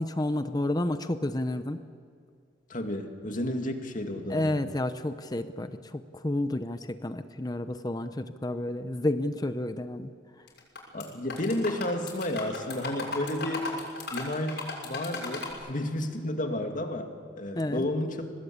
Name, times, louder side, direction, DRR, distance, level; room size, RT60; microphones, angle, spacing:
voice 1, 0.0-1.8 4.3-10.1 17.6-17.8, left 1 dB, 20° left, 10 dB, 0.7 m, -30 dB
voice 2, 2.7-4.5 10.9-13.7 14.1-17.1 17.4-18.2, left 1 dB, 45° left, 4 dB, 2.3 m, -31 dB
sound 1, 10.5-11.0 11.3-15.5, left 3 dB, 60° left, 6.7 m, -36 dB
24.5 x 19.0 x 8.7 m, 2.2 s
head